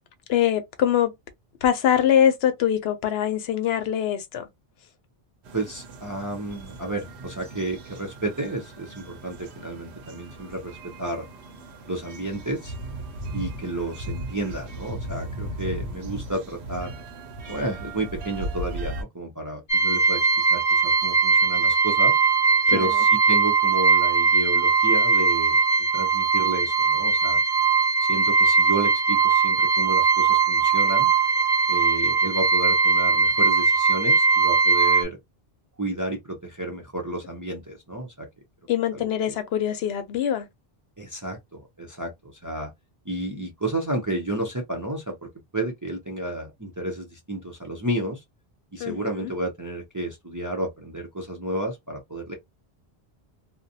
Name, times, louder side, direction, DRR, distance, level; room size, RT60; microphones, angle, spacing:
voice 1, 0.3-1.1 1.6-4.4 22.7-22.9 38.7-40.5 48.8-49.3, left 10 dB, 75° left, 0.8 m, -23 dB
sound 1, 5.4-19.0, right 1 dB, 85° right, 0.9 m, -37 dB
voice 2, 5.5-11.3 11.9-12.7 13.3-16.9 17.5-20.2 20.5-22.2 22.7-25.6 25.9-27.4 28.0-31.1 31.7-35.2 35.8-38.3 38.9-39.3 41.0-42.7 43.0-48.2 48.7-52.3, right 1 dB, 25° right, 0.5 m, -31 dB
sound 2, 19.7-35.0, right 4 dB, 40° left, 0.9 m, -20 dB
2.5 x 2.1 x 2.6 m
omnidirectional pair, 1.1 m